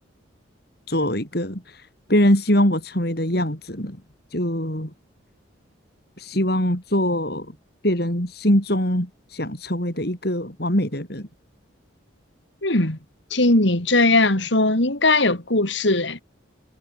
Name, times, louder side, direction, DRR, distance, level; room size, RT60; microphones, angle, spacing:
voice 1, 0.9-4.0 4.3-4.9 6.2-7.5 7.8-11.3, equal, 55° left, 6.0 m, -23 dB
voice 2, 12.6-13.0 13.3-16.2, left 2 dB, 70° left, 3.3 m, -19 dB
head